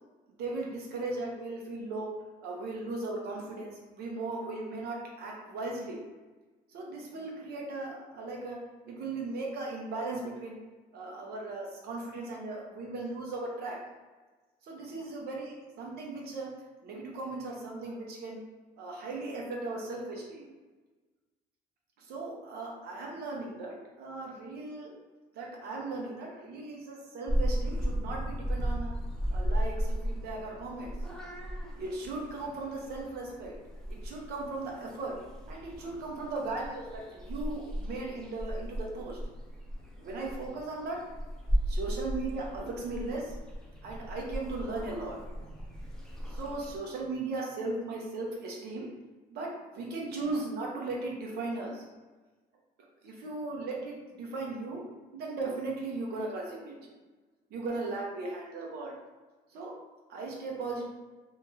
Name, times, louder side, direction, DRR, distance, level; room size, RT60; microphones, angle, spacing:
voice 1, 0.4-2.1 2.4-6.0 6.7-8.6 8.9-10.6 10.9-13.8 14.6-16.5 16.8-18.4 18.8-20.5 22.0-25.0 25.3-28.9 29.3-30.9 31.8-33.5 33.9-35.1 35.5-39.2 40.0-41.0 41.7-43.4 43.8-45.2 46.3-48.9 49.3-51.8 53.0-54.8 55.1-56.7 57.5-58.9 59.5-59.7 60.1-60.9, right 3 dB, 70° right, -1 dB, 0.8 m, -37 dB
Purr / Meow, 27.3-46.8, equal, 5° left, 0.5 m, -35 dB
2.7 x 2.3 x 3.1 m, 1.3 s
cardioid pair, 110°, 17 cm